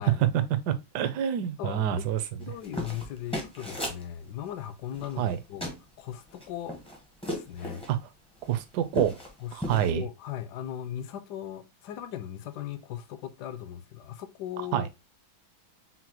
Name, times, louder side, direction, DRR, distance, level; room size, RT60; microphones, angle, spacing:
voice 1, 0.0-2.2 5.2-5.4 7.9-8.0 8.4-9.2 9.5-10.1 14.7-14.9, right 10 dB, 70° right, 1.0 m, -27 dB
voice 2, 1.6-2.1 2.4-5.7 6.0-6.8 7.2-7.8 9.4-14.9, left 10 dB, 75° left, 1.0 m, -38 dB
sound 1, 2.4-4.0 4.9-5.4 5.6-5.8 6.3-7.9 8.4-8.5 8.8-9.3 9.6-9.9, equal, 10° left, 0.3 m, -35 dB
5.8 x 2.1 x 2.9 m
omnidirectional pair, 2.1 m